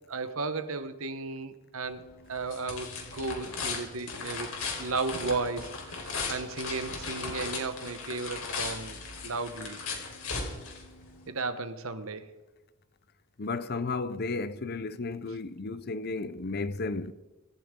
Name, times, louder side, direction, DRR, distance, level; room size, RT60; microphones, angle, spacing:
voice 1, 0.1-2.0 2.3-4.5 4.8-9.8 11.3-12.3, right 3 dB, 70° right, 1.1 m, -34 dB
sound 1, 1.8-11.3, left 4 dB, 75° left, 4.3 m, -37 dB
voice 2, 13.4-17.1, left 3 dB, 45° left, 0.7 m, -33 dB
25.5 x 14.0 x 3.8 m
head